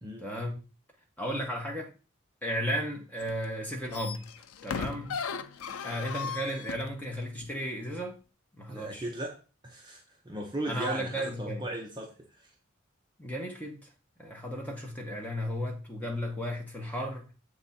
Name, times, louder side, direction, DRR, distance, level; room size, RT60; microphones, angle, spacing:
voice 1, 0.2-0.6 1.2-1.9 2.4-4.3 4.6-5.1 5.8-8.2 8.6-9.1 10.7-11.6 13.2-13.9 14.2-17.3, equal, 5° left, 1.2 m, -34 dB
sound 1, 3.2-3.5 3.7-6.9 7.4-7.5, left 6 dB, 90° left, 0.5 m, -37 dB
voice 2, 8.7-12.5, right 1 dB, 20° right, 0.7 m, -38 dB
7.2 x 3.6 x 4.2 m
head